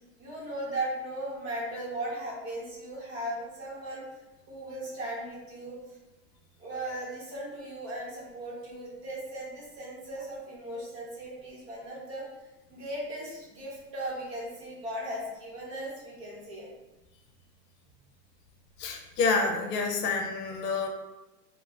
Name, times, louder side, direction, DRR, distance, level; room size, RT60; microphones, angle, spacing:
voice 1, 0.2-4.0 4.5-5.8 6.6-12.2 12.7-16.7, right 1 dB, 40° right, -5 dB, 0.8 m, -37 dB
voice 2, 18.8-20.9, left 4 dB, 70° left, 2 dB, 0.6 m, -28 dB
2.3 x 2.1 x 3.1 m, 1.0 s
supercardioid pair, 170°, 50 cm